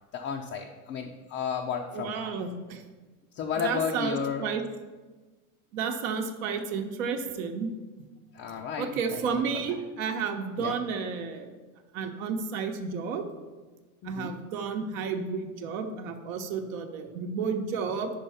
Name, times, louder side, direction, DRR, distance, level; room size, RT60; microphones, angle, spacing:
voice 1, 0.1-2.3 3.3-4.5 8.3-9.3 9.5-9.6 10.6-10.8 14.0-14.4, left 6 dB, 30° left, 2 dB, 0.5 m, -33 dB
voice 2, 1.9-2.8 3.6-4.6 5.7-7.7 8.8-11.5 11.9-13.2 14.0-18.1, right 5 dB, 60° right, 5 dB, 0.9 m, -32 dB
5.4 x 4.6 x 5.7 m, 1.3 s
hypercardioid pair, 105°, 45 cm